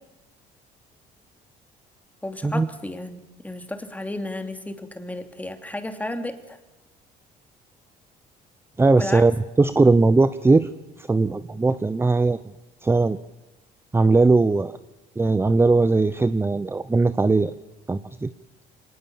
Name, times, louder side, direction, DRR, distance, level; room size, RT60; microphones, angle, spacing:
voice 1, 2.2-6.6 9.0-9.2, left 1 dB, 10° left, 6 dB, 2.7 m, -33 dB
voice 2, 8.8-10.7 11.0-12.4 12.8-13.2 13.9-14.8 15.2-17.5 17.9-18.3, right 3 dB, 15° right, 14 dB, 0.7 m, -19 dB
24.5 x 19.0 x 7.2 m, 1.0 s
cardioid pair, 110°, 17 cm